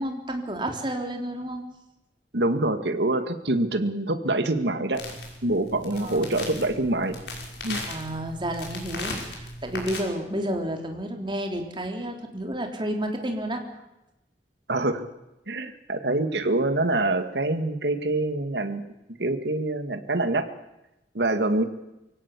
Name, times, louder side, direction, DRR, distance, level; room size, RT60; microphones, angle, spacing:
voice 1, 0.0-1.6 5.9-6.3 7.9-13.6, right 1 dB, 30° right, 3 dB, 3.6 m, -31 dB
voice 2, 2.3-5.0 5.4-7.1 7.6-7.8 14.7-15.0 15.5-18.8 19.2-20.5 21.1-21.6, right 2 dB, 75° right, 9 dB, 2.1 m, -25 dB
sound 1, 4.9-10.0, left 2 dB, 70° left, 5.8 m, -37 dB
24.0 x 17.0 x 8.5 m, 0.94 s
head